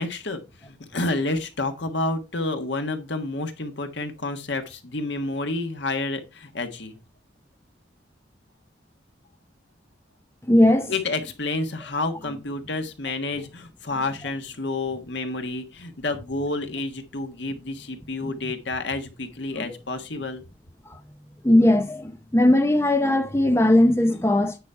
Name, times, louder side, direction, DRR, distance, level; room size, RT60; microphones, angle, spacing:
voice 1, 0.0-7.0 10.9-20.4, left 2 dB, 75° left, 1.4 m, -29 dB
voice 2, 10.5-10.9 18.2-18.3 19.6-19.7 20.9-21.0 21.4-24.6, left 1 dB, 15° left, 0.7 m, -19 dB
9.4 x 5.2 x 4.5 m
head